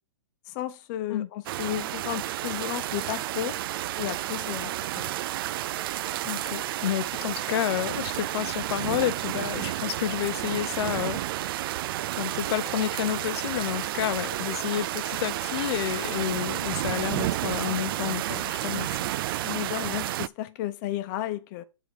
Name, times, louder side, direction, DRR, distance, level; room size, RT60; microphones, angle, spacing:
voice 1, 0.5-3.6 4.0-5.1 19.4-21.6, left 13 dB, 40° left, 1.0 m, -33 dB
sound 1, 1.5-20.3, right 14 dB, 50° right, 0.4 m, -31 dB
voice 2, 6.2-11.2 12.2-19.0, left 11 dB, 60° left, 0.7 m, -30 dB
8.0 x 3.9 x 6.4 m
hypercardioid pair, 140°, 16 cm